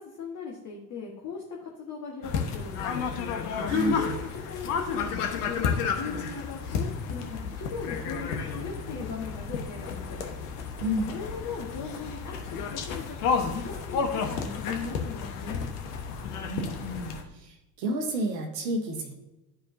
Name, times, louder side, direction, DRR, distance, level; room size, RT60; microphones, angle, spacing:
voice 1, 0.0-3.1 3.8-4.2 4.5-10.2 11.0-15.7, left 5 dB, 35° left, -2 dB, 1.4 m, -39 dB
sound 1, 2.2-17.2, left 6 dB, 65° left, 1.1 m, -31 dB
voice 2, 16.4-17.1 17.4-19.1, right 1 dB, 75° right, 2 dB, 1.2 m, -30 dB
12.0 x 4.7 x 2.6 m, 0.99 s
figure-of-eight pair, 65°, 50 cm